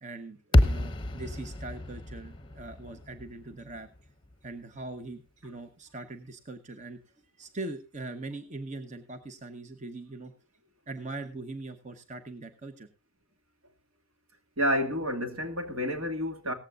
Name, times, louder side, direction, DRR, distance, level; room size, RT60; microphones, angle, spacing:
voice 1, 0.0-3.9 4.4-7.0 7.4-10.3 10.9-12.9, right 2 dB, 35° right, 1.0 m, -41 dB
sound 1, 0.5-4.8, left 1 dB, 20° left, 1.0 m, -28 dB
voice 2, 14.6-16.5, equal, 75° right, 2.4 m, -29 dB
17.5 x 15.0 x 2.5 m
head